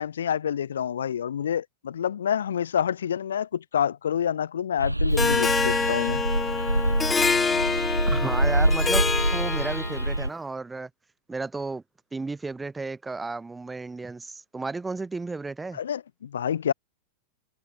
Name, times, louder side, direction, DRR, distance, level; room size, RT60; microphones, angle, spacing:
voice 1, 0.0-6.2 15.7-16.7, left 9 dB, 65° left, 2.7 m, -28 dB
sound 1, 4.8-10.3, right 1 dB, 85° right, 2.1 m, -25 dB
Harp, 5.2-10.2, left 5 dB, 15° left, 1.8 m, -26 dB
voice 2, 8.1-9.0 9.3-10.9 11.3-11.8 12.1-15.8, right 3 dB, 10° right, 6.5 m, -33 dB
figure-of-eight pair, 90°, 0 cm